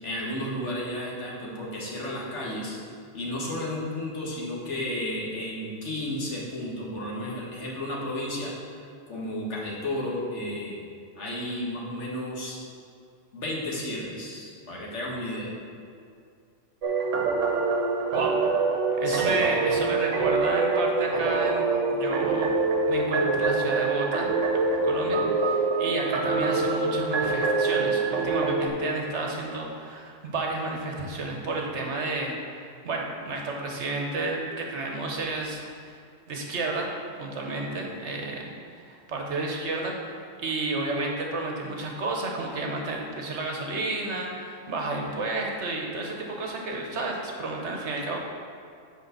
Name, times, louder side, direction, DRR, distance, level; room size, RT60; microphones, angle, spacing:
voice 1, 0.0-2.8 3.1-8.5 9.1-10.8 11.2-12.6 13.3-15.5 19.0-19.4 37.4-37.7, left 1 dB, 70° left, -4 dB, 1.8 m, -33 dB
sound 1, 16.8-28.7, right 3 dB, 85° right, 1.2 m, -25 dB
voice 2, 18.1-18.6 19.0-22.5 22.9-36.0 36.3-36.9 37.2-48.2, right 2 dB, 70° right, 0 dB, 1.3 m, -31 dB
6.7 x 4.9 x 6.7 m, 2.3 s
omnidirectional pair, 1.2 m